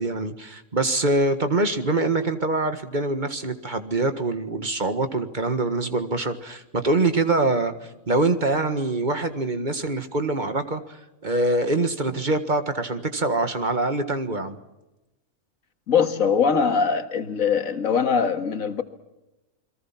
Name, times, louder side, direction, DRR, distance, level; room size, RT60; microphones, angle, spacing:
voice 1, 0.0-14.6, right 2 dB, 35° right, 8 dB, 1.8 m, -24 dB
voice 2, 15.9-18.8, left 6 dB, 75° left, 8 dB, 2.1 m, -22 dB
29.0 x 22.0 x 5.9 m, 0.96 s
omnidirectional pair, 1.4 m